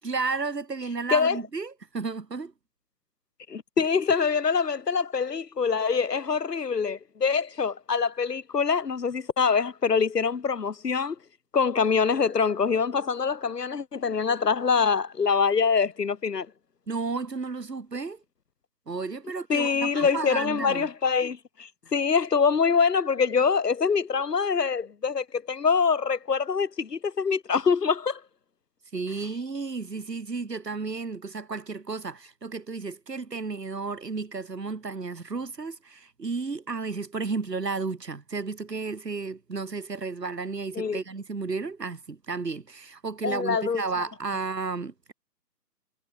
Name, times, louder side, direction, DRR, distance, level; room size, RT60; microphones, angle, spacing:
voice 1, 0.0-2.5 16.9-18.2 18.9-20.9 28.9-45.1, right 4 dB, 85° right, 7.6 m, -33 dB
voice 2, 1.1-1.4 3.5-11.2 11.5-16.5 19.5-28.2 40.8-41.0 43.2-44.1, left 5 dB, 80° left, 2.5 m, -25 dB
hypercardioid pair, 155°, 48 cm